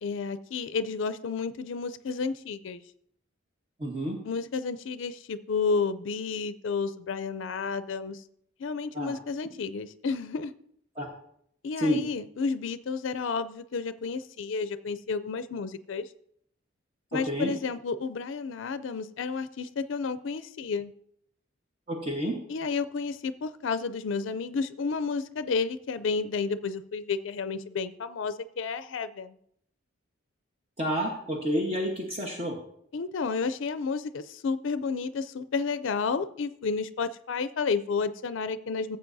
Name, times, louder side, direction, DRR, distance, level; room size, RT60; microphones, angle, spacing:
voice 1, 0.0-2.8 4.2-8.2 8.6-10.5 11.6-16.1 17.1-20.9 22.5-29.4 32.9-39.0, left 5 dB, 65° left, 13 dB, 0.4 m, -31 dB
voice 2, 3.8-4.2 8.9-9.2 11.0-11.1 11.8-12.0 17.1-17.5 21.9-22.4 30.8-32.6, equal, 30° right, 0 dB, 1.2 m, -29 dB
15.0 x 7.8 x 2.7 m, 0.69 s
head